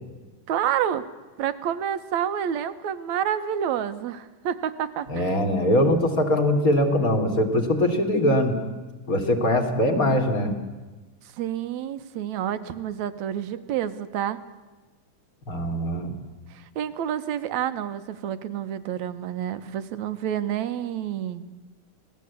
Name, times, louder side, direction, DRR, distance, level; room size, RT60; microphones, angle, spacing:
voice 1, 0.5-1.0 1.4-5.4 11.4-14.4 16.5-21.4, right 9 dB, 75° right, 11 dB, 2.3 m, -29 dB
voice 2, 5.1-8.6 9.1-10.5 15.5-16.1, left 1 dB, 30° left, 5 dB, 2.7 m, -22 dB
27.0 x 18.5 x 8.3 m, 1.2 s
omnidirectional pair, 3.4 m